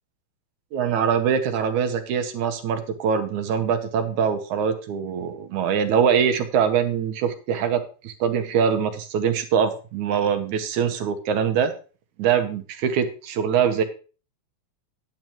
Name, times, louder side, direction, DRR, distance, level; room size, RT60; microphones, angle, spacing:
voice 1, 0.7-11.7 12.2-13.8, right 7 dB, 75° right, 7 dB, 2.4 m, -23 dB
10.5 x 9.4 x 3.0 m, 0.36 s
omnidirectional pair, 3.5 m